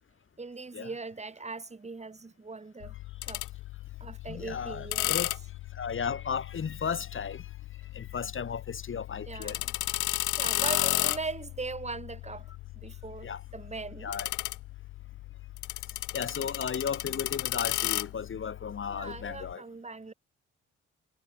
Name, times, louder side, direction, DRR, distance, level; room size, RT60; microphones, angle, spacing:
voice 1, 0.4-2.9 3.2-3.4 4.0-5.1 9.3-9.7 10.4-12.5 12.7-14.1 18.9-20.1, right 3 dB, 25° right, 2.7 m, -40 dB
sound 1, 2.8-19.5, left 17 dB, 90° left, 1.0 m, -35 dB
voice 2, 4.3-5.3 5.7-7.5 7.9-9.6 10.6-10.9 13.2-13.4 14.0-14.3 16.1-19.6, left 6 dB, 45° left, 1.8 m, -35 dB
cardioid pair, 70°, 29 cm